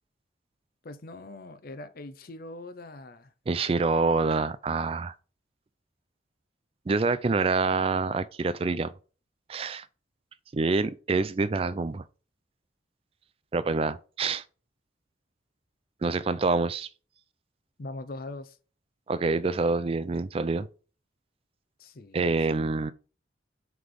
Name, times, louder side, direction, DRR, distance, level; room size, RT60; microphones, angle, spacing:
voice 1, 0.8-3.3 17.8-18.6 21.8-22.4, left 2 dB, 50° left, 0.6 m, -42 dB
voice 2, 3.5-5.1 6.9-8.9 9.5-9.9 10.5-12.0 13.5-14.4 16.0-16.9 19.1-20.7 22.1-22.9, right 3 dB, 30° right, 0.4 m, -26 dB
5.9 x 3.5 x 4.7 m
head